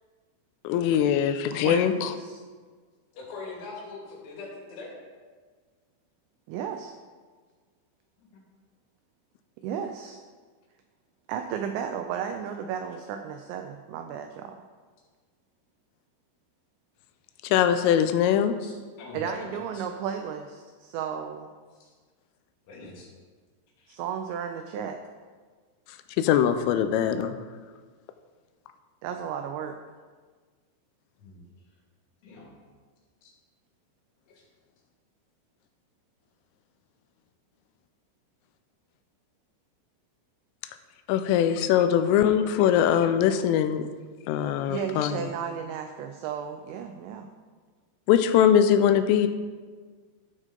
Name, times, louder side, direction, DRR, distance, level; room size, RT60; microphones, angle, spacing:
voice 1, 0.6-2.1 17.5-18.6 26.2-27.4 41.1-43.8 44.3-45.1 48.1-49.3, left 9 dB, 90° left, 9 dB, 3.2 m, -22 dB
voice 2, 1.5-2.4 6.5-6.9 9.6-10.2 11.3-14.6 19.1-21.5 23.9-25.0 29.0-29.8 44.7-47.3, right 8 dB, 85° right, 6 dB, 2.6 m, -34 dB
voice 3, 3.1-4.9 8.2-8.4 18.6-18.7 19.0-19.5 19.7-19.9 21.8-21.9 22.7-23.1 23.8-24.0 31.2-31.4 32.2-32.5 33.2-33.3 34.3-34.4, left 3 dB, 70° left, -3 dB, 4.5 m, -42 dB
13.5 x 6.5 x 3.8 m, 1.5 s
omnidirectional pair, 5.7 m